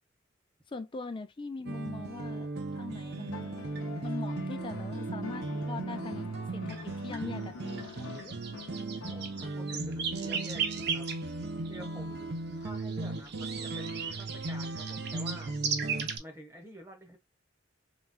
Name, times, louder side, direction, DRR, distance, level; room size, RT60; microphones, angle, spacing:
voice 1, 0.7-2.5 2.7-3.5 4.0-6.8 7.0-8.3, left 3 dB, 25° left, 0.3 m, -41 dB
sound 1, 1.7-16.2, right 4 dB, 55° right, 0.6 m, -35 dB
sound 2, 3.3-9.7 11.2-11.3, left 4 dB, 90° left, 0.6 m, -45 dB
voice 2, 9.1-11.1 11.7-12.3 12.6-15.5 16.2-17.2, equal, 15° right, 1.0 m, -48 dB
4.1 x 2.2 x 2.3 m
head